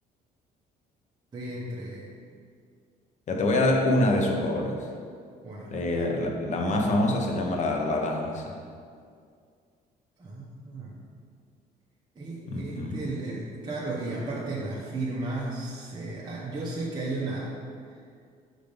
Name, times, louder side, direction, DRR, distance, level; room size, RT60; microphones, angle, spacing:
voice 1, 1.3-2.1 5.4-6.1 10.2-11.0 12.2-17.6, right 2 dB, 25° right, -6 dB, 1.0 m, -34 dB
voice 2, 3.3-4.9 5.7-8.6 12.5-13.0, left 1 dB, 45° left, 1 dB, 1.0 m, -25 dB
6.4 x 3.9 x 5.2 m, 2.2 s
cardioid pair, 110°, 17 cm